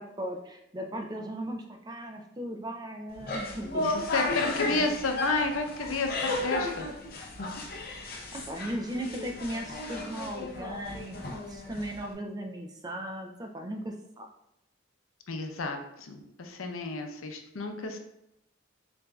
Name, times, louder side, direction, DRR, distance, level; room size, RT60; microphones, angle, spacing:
voice 1, 0.0-3.9 4.4-4.9 8.3-14.3, right 1 dB, 20° right, 3 dB, 0.4 m, -37 dB
sound 1, 3.1-12.1, left 2 dB, 45° left, 0.7 m, -34 dB
voice 2, 3.8-6.9 7.4-7.5 15.3-18.0, left 3 dB, 90° left, 4 dB, 0.6 m, -31 dB
6.7 x 2.6 x 2.3 m, 0.82 s
head